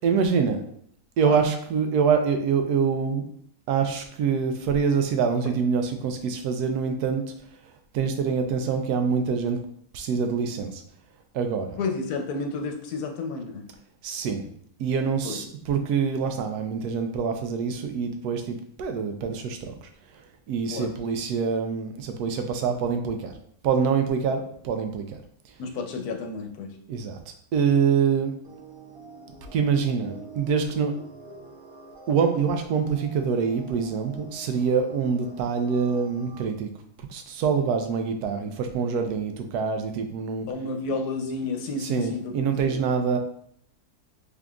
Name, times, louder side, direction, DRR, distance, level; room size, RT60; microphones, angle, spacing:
voice 1, 0.0-0.6 1.2-3.2 3.7-7.2 7.9-9.6 9.9-10.8 11.3-11.8 14.0-14.4 14.8-20.2 20.5-23.3 23.6-25.2 26.9-27.2 27.5-28.3 29.5-30.9 32.1-36.7 37.1-40.5 41.8-43.2, right 6 dB, 90° right, 6 dB, 1.1 m, -25 dB
voice 2, 11.8-13.7 15.2-15.4 20.7-20.9 25.6-26.8 40.5-42.3 42.7-42.8, left 3 dB, 90° left, 4 dB, 1.2 m, -31 dB
sound 1, 28.4-36.5, right 3 dB, 70° right, 0.5 m, -47 dB
3.7 x 3.6 x 2.3 m, 0.65 s
omnidirectional pair, 1.6 m